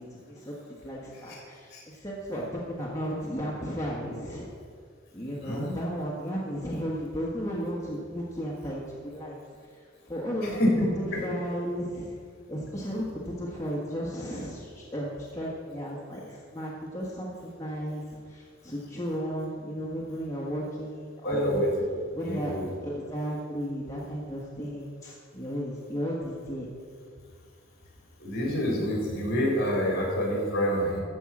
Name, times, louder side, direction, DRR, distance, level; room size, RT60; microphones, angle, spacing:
voice 1, 0.0-2.4 2.7-4.5 5.1-9.4 10.0-10.7 11.0-12.1 12.5-21.6 22.1-22.5 22.8-26.7, equal, 15° left, -5 dB, 1.4 m, -34 dB
voice 2, 5.4-5.7 10.4-10.7 11.1-11.2 21.2-21.7 22.3-22.6 28.2-31.0, equal, 55° left, -2 dB, 3.7 m, -27 dB
14.0 x 5.5 x 7.3 m, 2.1 s
head